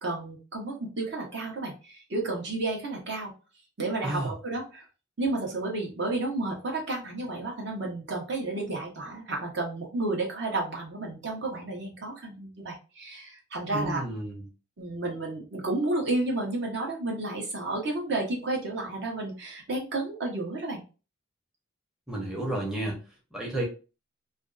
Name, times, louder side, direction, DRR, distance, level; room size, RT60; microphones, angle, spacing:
voice 1, 0.0-3.3 3.8-4.8 5.2-14.0 14.8-20.8, right 2 dB, 60° right, -1 dB, 0.8 m, -31 dB
voice 2, 13.7-14.4 22.1-23.0 23.3-23.6, right 1 dB, 5° right, -3 dB, 0.6 m, -31 dB
2.5 x 2.3 x 2.3 m, 0.33 s
head